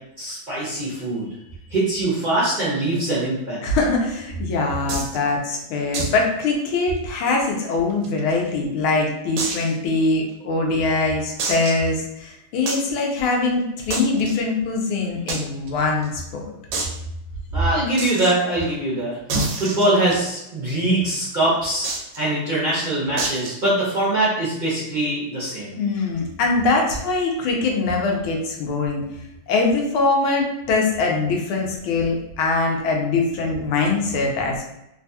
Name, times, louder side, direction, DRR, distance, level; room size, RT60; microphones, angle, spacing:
voice 1, 0.2-1.4 1.7-3.6 17.5-19.1 19.5-21.9 22.1-25.7, right 1 dB, 50° right, -8 dB, 0.5 m, -22 dB
voice 2, 3.6-16.4 25.8-29.0 29.5-34.6, left 3 dB, 85° left, 0 dB, 1.6 m, -22 dB
sound 1, 4.9-5.2 5.9-6.2 6.5-6.6 7.0-7.1 7.7-8.5 9.4-9.7 10.3-10.4 11.4-11.9 12.7-12.9 13.9-14.3 15.3-15.4 15.7-15.8 16.0-16.1 16.7-17.0 18.0-18.3 19.3-20.4 21.8-22.2 23.2-23.6, right 3 dB, 75° right, 1.3 m, -27 dB
4.0 x 2.3 x 2.7 m, 0.85 s
omnidirectional pair, 2.3 m